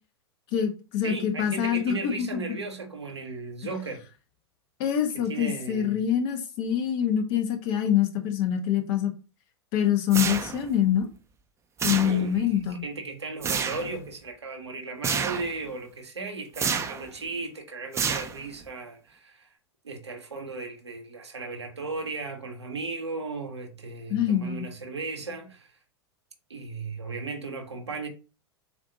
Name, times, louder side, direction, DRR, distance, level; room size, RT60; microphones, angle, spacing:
voice 1, 0.5-2.4 4.8-9.1 9.7-11.1 11.8-12.8 24.1-24.7, left 9 dB, 50° left, 1.1 m, -25 dB
voice 2, 1.0-4.0 5.3-6.1 12.0-19.5 19.8-25.7 26.5-28.1, right 3 dB, 85° right, 1.1 m, -36 dB
sound 1, 10.1-10.8 11.8-12.5 13.4-13.9 15.0-15.5 16.5-17.1 17.9-18.6, right 6 dB, 20° right, 0.7 m, -29 dB
7.0 x 2.7 x 2.8 m
figure-of-eight pair, 90°, 14 cm